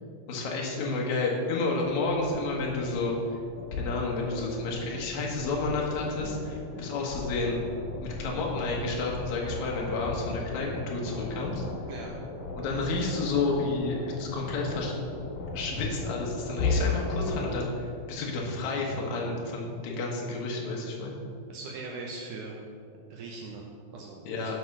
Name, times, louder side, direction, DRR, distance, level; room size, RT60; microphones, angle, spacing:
voice 1, 0.3-3.2 3.8-7.6 8.0-11.6 12.5-14.9 15.5-21.1 24.2-24.6, left 3 dB, 60° left, -2 dB, 2.3 m, -31 dB
sound 1, 1.8-17.5, left 3 dB, 80° left, 3.6 m, -36 dB
voice 2, 21.5-22.6 23.1-24.6, right 3 dB, 75° right, 0 dB, 1.9 m, -40 dB
7.8 x 6.0 x 5.9 m, 2.3 s
omnidirectional pair, 4.4 m